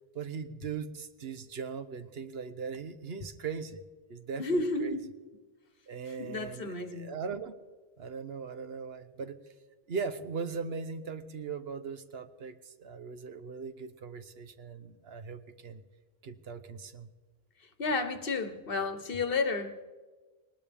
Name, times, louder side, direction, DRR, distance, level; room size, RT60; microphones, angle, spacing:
voice 1, 0.1-3.8 4.1-5.0 5.9-7.5 8.0-9.4 9.9-15.8 16.2-17.1, right 5 dB, 80° right, 10 dB, 1.1 m, -39 dB
voice 2, 4.4-5.1 6.2-7.1 17.8-19.9, left 3 dB, 65° left, 8 dB, 1.3 m, -31 dB
20.0 x 19.5 x 3.5 m, 1.3 s
omnidirectional pair, 1.0 m